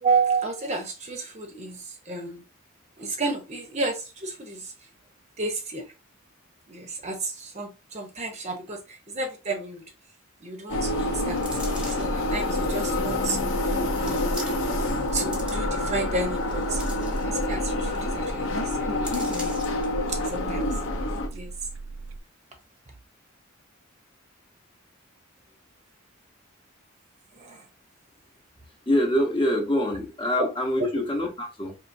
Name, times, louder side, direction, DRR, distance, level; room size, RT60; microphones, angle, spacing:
voice 1, 0.0-2.4 3.0-4.7 5.4-5.8 6.7-9.8 10.4-11.4 11.9-13.4 14.0-14.4 15.1-16.8 17.2-19.5 20.1-20.7 21.3-21.5 27.3-27.6 30.4-30.5 30.8-30.9, right 3 dB, 30° right, 0.7 m, -31 dB
sound 1, 10.7-21.3, left 2 dB, 75° left, 0.8 m, -27 dB
sound 2, 11.4-12.2 13.0-13.1 14.0-14.8 15.1-15.9 16.4-17.6 17.9-18.0 18.3-18.5 19.0-19.9 20.3-20.4, right 1 dB, 5° right, 1.0 m, -40 dB
sound 3, 11.5-22.2, right 3 dB, 85° right, 0.4 m, -40 dB
voice 2, 28.9-31.8, left 1 dB, 25° left, 0.9 m, -25 dB
4.4 x 3.0 x 2.6 m
head